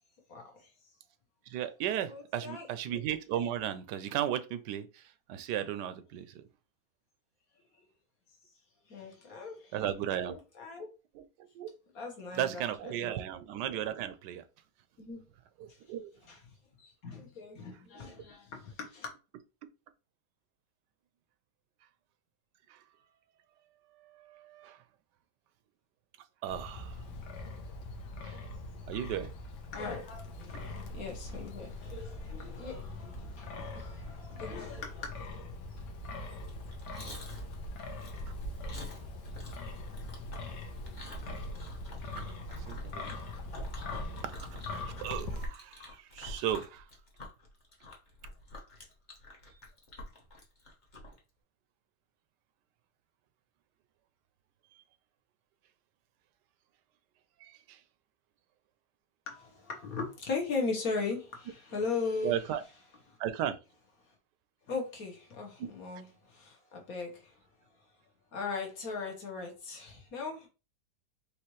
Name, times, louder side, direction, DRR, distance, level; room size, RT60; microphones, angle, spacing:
voice 1, 1.5-5.0 5.3-6.4 9.7-10.4 11.1-11.2 11.5-11.7 12.3-14.4 15.6-16.1 18.0-18.1 22.7-22.8 24.1-24.8 26.4-27.0 28.2-28.4 28.9-29.3 42.5-43.2 44.2-46.8 57.4-57.8 62.2-62.6 63.2-63.6 65.6-65.7, right 10 dB, 85° right, 1.2 m, -35 dB
voice 2, 2.1-2.7 8.9-9.7 10.3-10.9 11.9-13.2 15.0-15.2 16.2-16.4 16.8-19.1 29.7-35.1 59.3-62.4 63.1-63.2 64.7-67.3 68.3-70.5, left 4 dB, 60° left, 1.5 m, -38 dB
Wind, 26.5-45.5, left 2 dB, 90° left, 1.5 m, -42 dB
Chewing mastication, 36.4-51.2, left 1 dB, 30° left, 1.1 m, -48 dB
4.9 x 2.9 x 3.1 m
omnidirectional pair, 1.8 m